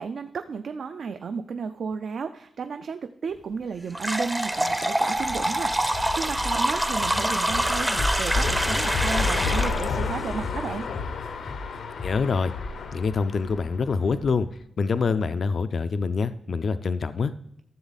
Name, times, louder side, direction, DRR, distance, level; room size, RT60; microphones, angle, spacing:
voice 1, 0.0-10.9, right 5 dB, 60° right, 8 dB, 0.4 m, -33 dB
sound 1, 3.9-9.9, right 1 dB, 5° right, 0.6 m, -26 dB
sound 2, 5.2-14.4, left 4 dB, 80° left, 1.0 m, -30 dB
voice 2, 12.0-12.5 12.9-14.5 14.8-17.3, left 5 dB, 50° left, 12 dB, 0.4 m, -25 dB
13.5 x 7.2 x 4.0 m, 0.74 s
wide cardioid pair, 160°, 0 cm